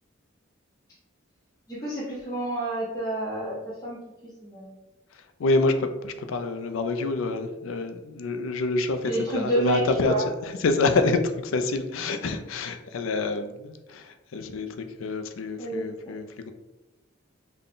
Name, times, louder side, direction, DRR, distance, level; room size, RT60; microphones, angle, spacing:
voice 1, 1.7-3.6 3.8-4.0 4.4-4.7 9.0-10.2 15.6-15.8, right 1 dB, 20° left, -9 dB, 0.8 m, -29 dB
voice 2, 5.1-16.5, left 3 dB, 85° left, 8 dB, 0.4 m, -27 dB
3.8 x 2.2 x 3.7 m, 1.0 s
head